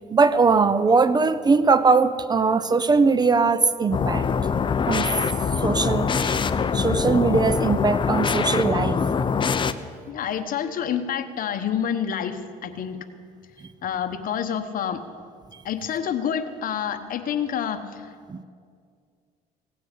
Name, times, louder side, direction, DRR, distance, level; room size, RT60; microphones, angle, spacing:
voice 1, 0.1-4.2 4.9-5.2 5.6-6.4 6.7-9.0 18.3-18.4, right 4 dB, 25° right, 14 dB, 0.6 m, -20 dB
sound 1, 3.9-9.7, left 6 dB, 30° left, 0.6 m, -23 dB
voice 2, 10.1-13.0 13.8-15.0 15.6-18.1, left 8 dB, 55° left, 9 dB, 1.2 m, -28 dB
16.5 x 9.3 x 8.4 m, 2.1 s
cardioid pair, 110°, 17 cm